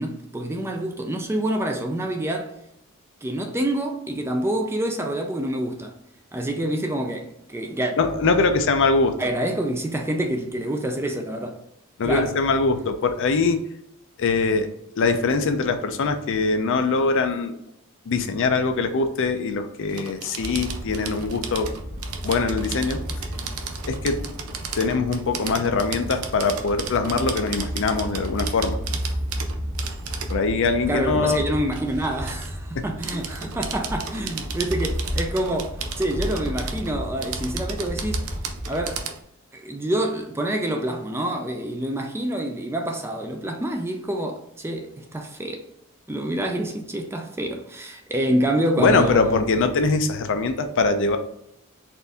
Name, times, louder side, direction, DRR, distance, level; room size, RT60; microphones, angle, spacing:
voice 1, 0.0-2.5 3.2-5.9 6.3-7.9 9.2-11.6 12.0-12.3 30.9-38.3 38.7-39.0 39.5-45.6 46.1-49.4, right 1 dB, 10° right, 0.4 m, -27 dB
voice 2, 8.0-9.1 12.0-13.6 14.2-14.7 15.0-17.6 18.1-21.7 22.2-23.0 23.9-24.2 24.8-28.8 30.3-31.5 48.8-51.2, left 4 dB, 60° left, 0.5 m, -22 dB
sound 1, 19.9-30.4 31.7-32.5 33.0-39.2, right 6 dB, 80° right, 0.5 m, -35 dB
sound 2, 20.4-39.0, equal, 35° right, 1.2 m, -33 dB
4.3 x 2.6 x 3.4 m
head